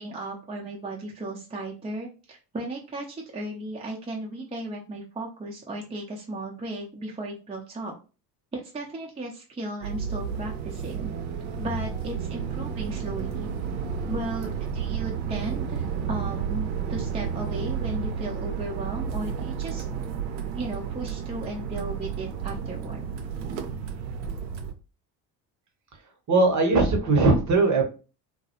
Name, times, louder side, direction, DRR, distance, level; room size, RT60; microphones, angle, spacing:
voice 1, 0.0-7.9 8.5-11.1 11.6-13.5 14.1-19.8 20.5-23.0, right 2 dB, 10° right, -1 dB, 0.5 m, -35 dB
sound 1, 9.8-24.7, right 7 dB, 80° right, 0.5 m, -31 dB
voice 2, 26.3-27.8, right 3 dB, 35° right, 3 dB, 0.8 m, -20 dB
2.2 x 2.0 x 2.8 m, 0.33 s
hypercardioid pair, 60°, 49 cm